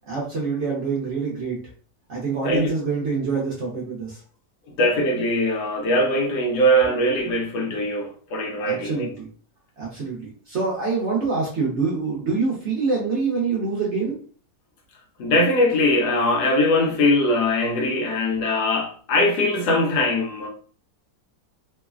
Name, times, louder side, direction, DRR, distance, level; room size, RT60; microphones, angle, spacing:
voice 1, 0.1-1.7 2.1-4.2 8.6-9.3 9.8-14.2, right 4 dB, 55° right, 0.9 m, -25 dB
voice 2, 4.8-9.1 15.2-20.5, left 1 dB, 75° left, 1.2 m, -21 dB
3.1 x 2.1 x 2.3 m
omnidirectional pair, 1.8 m